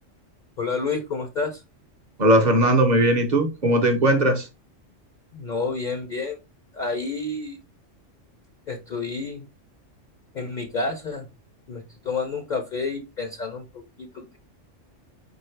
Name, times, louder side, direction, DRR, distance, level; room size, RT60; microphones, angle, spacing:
voice 1, 0.6-1.6 5.3-6.4 6.7-7.6 8.7-9.5 10.3-11.3 11.7-14.4, left 4 dB, 50° left, 0.6 m, -29 dB
voice 2, 2.2-4.5, right 1 dB, 45° right, 0.6 m, -19 dB
4.9 x 2.7 x 3.2 m
omnidirectional pair, 1.3 m